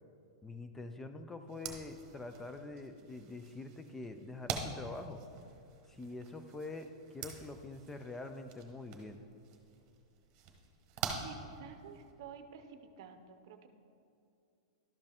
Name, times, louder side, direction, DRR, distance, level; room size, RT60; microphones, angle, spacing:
voice 1, 0.4-5.2 5.9-9.2, left 2 dB, 10° left, 7 dB, 0.4 m, -45 dB
sound 1, 1.5-12.1, right 6 dB, 40° right, 1.1 m, -46 dB
voice 2, 11.2-13.7, right 7 dB, 60° right, 8 dB, 0.7 m, -51 dB
12.0 x 5.3 x 3.5 m, 2.6 s
hypercardioid pair, 135°, 3 cm